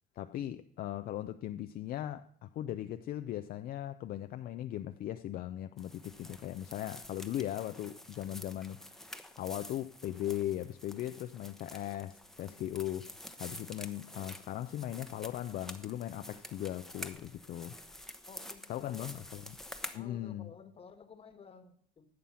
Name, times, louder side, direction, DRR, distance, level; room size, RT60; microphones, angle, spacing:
voice 1, 0.2-9.1 9.4-18.0 18.7-19.4 19.9-20.5, left 12 dB, 60° left, 0.5 m, -38 dB
sound 1, 5.8-20.0, left 1 dB, ahead, 0.8 m, -49 dB
voice 2, 18.3-19.4 19.9-22.1, left 5 dB, 35° left, 1.3 m, -53 dB
11.5 x 7.3 x 5.6 m
cardioid pair, 110°, 17 cm